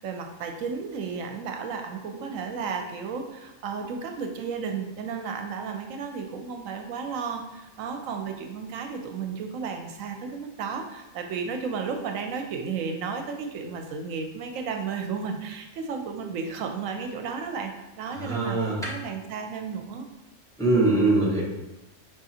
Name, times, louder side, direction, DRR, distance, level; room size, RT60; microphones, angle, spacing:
voice 1, 0.0-20.1, right 5 dB, 80° right, 5 dB, 1.0 m, -33 dB
voice 2, 18.1-18.9 20.6-21.4, right 2 dB, 5° left, -6 dB, 0.9 m, -22 dB
5.2 x 3.7 x 2.8 m, 1.0 s
omnidirectional pair, 1.4 m